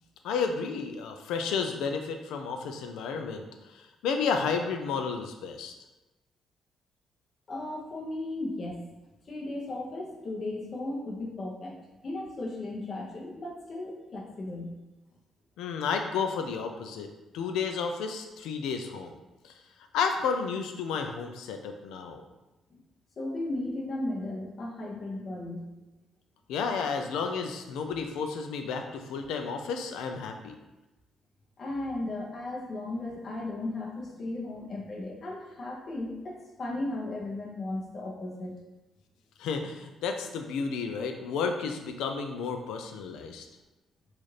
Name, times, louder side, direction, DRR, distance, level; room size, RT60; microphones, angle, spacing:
voice 1, 0.2-5.7 15.6-17.1 17.3-19.1 19.4-19.6 19.9-22.2 26.5-30.6 39.4-43.5, left 5 dB, 90° left, 5 dB, 0.4 m, -32 dB
voice 2, 7.5-8.8 9.3-11.7 12.0-14.7 22.7-22.8 23.2-25.7 31.6-38.6, left 2 dB, 45° left, -1 dB, 0.9 m, -35 dB
4.1 x 2.5 x 3.2 m, 1.1 s
cardioid pair, 90°, 0 cm